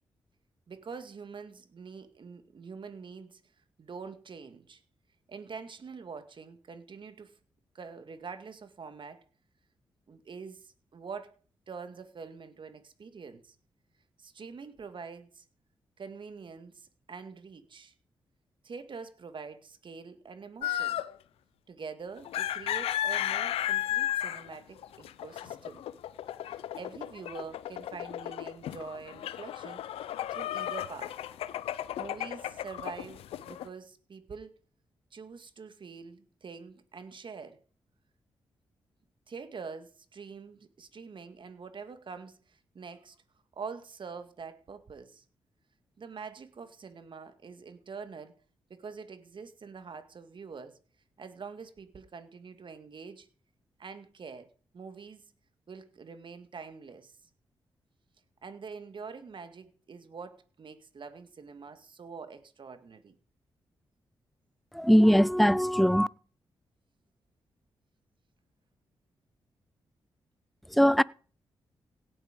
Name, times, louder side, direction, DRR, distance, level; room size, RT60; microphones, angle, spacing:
voice 1, 0.7-3.4 3.8-4.8 5.3-7.4 7.7-9.2 10.1-11.3 11.7-13.6 14.2-15.4 16.0-17.9 18.6-21.0 21.7-25.8 26.7-31.2 32.0-34.6 35.1-37.6 39.3-43.2 43.5-45.2 46.0-48.4 48.7-50.8 51.2-53.3 53.8-54.5 54.7-55.3 55.7-57.2 58.4-63.1, right 5 dB, 55° right, 2.0 m, -45 dB
sound 1, 20.6-21.2 22.2-33.7, left 12 dB, 85° left, 0.7 m, -34 dB
voice 2, 64.7-66.1 70.7-71.0, equal, ahead, 0.6 m, -21 dB
17.0 x 8.2 x 5.3 m
supercardioid pair, 45°, 10 cm